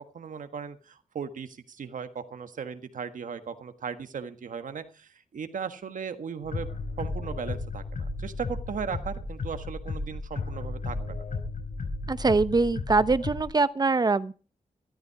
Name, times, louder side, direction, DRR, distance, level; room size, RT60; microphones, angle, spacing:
voice 1, 0.1-6.7 7.0-11.2, right 6 dB, 85° right, 1.5 m, -37 dB
sound 1, 6.4-13.4, left 3 dB, 85° left, 4.8 m, -34 dB
voice 2, 12.1-14.3, right 3 dB, 30° right, 0.8 m, -23 dB
14.0 x 13.5 x 4.7 m
wide cardioid pair, 120°, 13 cm